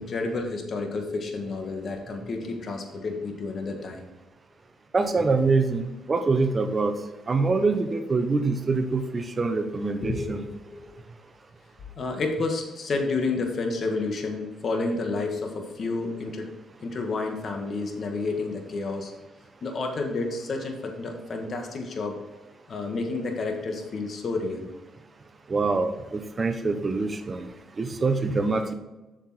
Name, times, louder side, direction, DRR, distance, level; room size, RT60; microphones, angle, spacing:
voice 1, 0.0-4.1 10.0-10.9 12.0-16.5 16.8-19.1 19.6-22.2 22.7-24.7, left 3 dB, 50° left, 3 dB, 1.8 m, -30 dB
voice 2, 4.9-6.9 7.3-10.4 25.5-27.5 27.8-28.7, right 3 dB, 35° right, 8 dB, 1.0 m, -25 dB
7.8 x 6.7 x 4.4 m, 1.1 s
cardioid pair, 90°, 0 cm